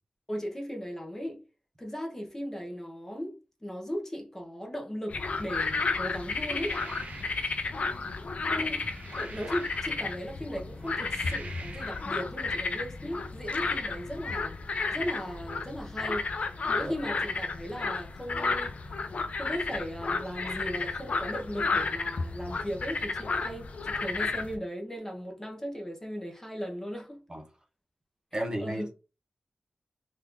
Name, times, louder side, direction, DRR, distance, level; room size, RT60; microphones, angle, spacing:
voice 1, 0.3-1.4 1.8-6.8 8.4-8.8 9.1-14.6 14.9-16.3 16.7-18.7 19.4-27.2 28.3-28.9, equal, 15° left, 0.8 m, -37 dB
sound 1, 5.1-24.6, left 4 dB, 60° left, 0.4 m, -32 dB
sound 2, 6.2-7.7 8.5-10.2 10.7-12.1, right 3 dB, 60° right, 0.6 m, -46 dB
voice 2, 28.3-28.9, right 1 dB, 30° right, 0.9 m, -33 dB
2.9 x 2.5 x 3.6 m
wide cardioid pair, 100°, 3 cm